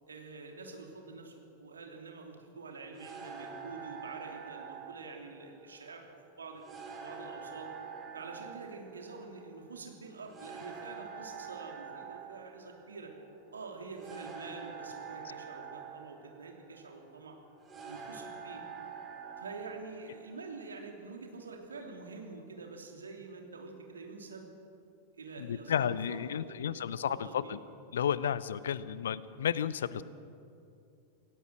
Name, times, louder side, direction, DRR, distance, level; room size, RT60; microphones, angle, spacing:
voice 1, 0.1-6.0 6.4-6.6 7.0-7.7 8.1-13.1 13.5-17.3 17.8-18.6 19.4-24.5 25.1-27.6 28.9-29.0 29.9-30.0, right 4 dB, 70° right, 2 dB, 3.2 m, -46 dB
sound 1, 2.9-20.7, right 6 dB, 20° right, 3.5 m, -47 dB
voice 2, 25.4-27.6 27.9-30.0, left 9 dB, 65° left, 18 dB, 0.7 m, -32 dB
28.0 x 17.5 x 6.3 m, 2.6 s
figure-of-eight pair, 90°, 0 cm